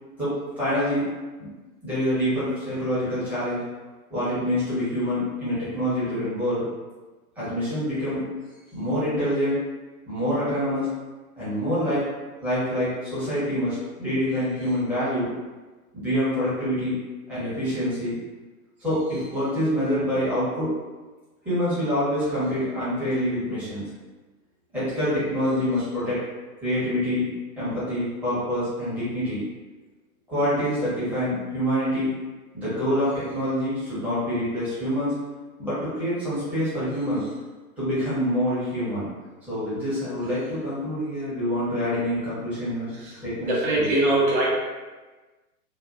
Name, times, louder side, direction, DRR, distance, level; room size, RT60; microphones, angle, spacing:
voice 1, 0.2-1.1 1.4-1.5 1.8-3.6 4.1-6.6 7.4-8.2 8.7-9.6 10.1-10.9 11.4-12.0 12.4-15.3 15.9-17.0 17.3-18.2 18.8-20.7 21.4-23.8 24.7-26.3 26.6-27.3 27.6-29.4 30.3-32.1 32.5-35.2 35.6-37.3 37.8-39.1 39.5-42.9 43.2-43.9, equal, 5° right, -13 dB, 0.9 m, -26 dB
voice 2, 43.5-44.5, right 1 dB, 35° right, -6 dB, 0.9 m, -21 dB
2.8 x 2.2 x 2.4 m, 1.2 s
figure-of-eight pair, 115°, 45 cm